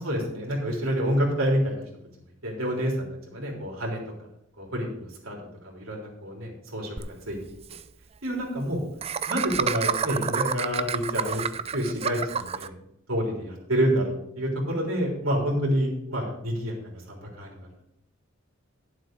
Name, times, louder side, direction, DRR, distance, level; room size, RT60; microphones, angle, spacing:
voice 1, 0.0-1.8 2.4-4.0 4.6-5.4 5.6-7.4 8.2-8.8 9.3-11.4 11.7-12.7 13.1-16.7 17.1-17.5, equal, 80° right, -1 dB, 3.8 m, -28 dB
Laughter, 7.0-7.1 7.3-7.4 7.6-7.8 9.0-12.7, right 6 dB, 30° right, 0.4 m, -28 dB
12.0 x 7.5 x 4.7 m, 0.78 s
head